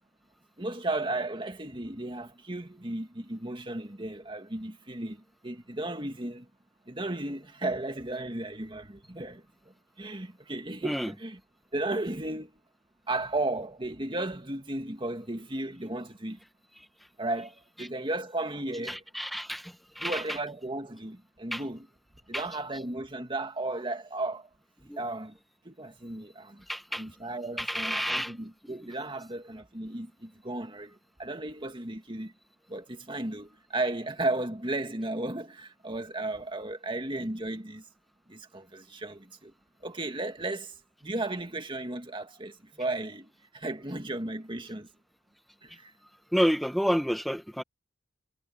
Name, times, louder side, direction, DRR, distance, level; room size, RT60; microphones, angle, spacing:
voice 1, 0.6-6.5 6.9-11.4 11.7-12.6 13.1-16.4 17.2-19.0 20.0-21.9 22.3-24.5 25.0-25.4 25.6-26.6 26.9-32.3 32.7-37.8 38.3-39.5 39.8-44.9 45.6-45.9, right 2 dB, 25° right, 2.2 m, -35 dB
voice 2, 18.9-20.2 21.5-21.6 22.3-22.4 24.9-25.0 26.7-27.0 27.6-28.3 28.8-28.9 46.3-47.6, equal, ahead, 1.4 m, -29 dB
head